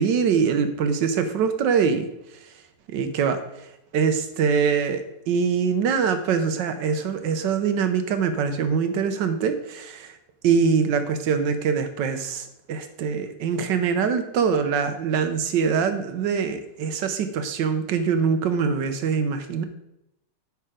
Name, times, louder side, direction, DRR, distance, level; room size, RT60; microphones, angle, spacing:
voice 1, 0.0-2.1 2.9-3.4 3.9-10.1 10.4-12.4 12.7-19.6, right 6 dB, 85° right, 9 dB, 1.5 m, -23 dB
9.8 x 5.7 x 5.0 m, 0.85 s
omnidirectional pair, 1.9 m